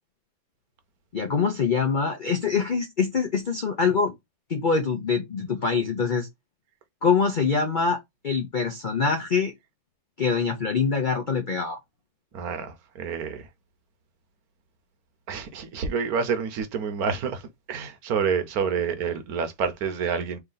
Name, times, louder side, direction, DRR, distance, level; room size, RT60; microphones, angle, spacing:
voice 1, 1.1-4.1 4.5-6.3 7.0-8.0 8.2-9.5 10.2-11.8, left 5 dB, 80° left, 0.4 m, -24 dB
voice 2, 12.3-13.4 15.3-17.4 17.7-20.4, right 6 dB, 65° right, 1.1 m, -28 dB
3.4 x 2.8 x 3.8 m
omnidirectional pair, 1.9 m